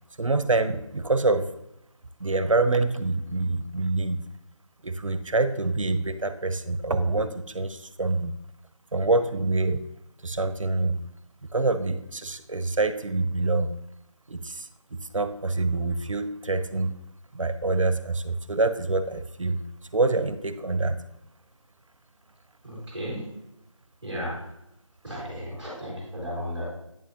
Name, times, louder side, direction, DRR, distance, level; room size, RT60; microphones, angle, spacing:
voice 1, 0.2-1.5 2.2-4.2 4.8-8.4 8.9-9.9 10.2-11.0 11.5-13.7 14.3-16.9 17.3-19.6 19.9-21.0, right 3 dB, 75° right, 12 dB, 0.7 m, -26 dB
voice 2, 22.6-23.2 24.0-24.4 25.0-26.7, equal, ahead, -7 dB, 3.0 m, -34 dB
9.0 x 6.7 x 2.7 m, 0.87 s
figure-of-eight pair, 170°, 17 cm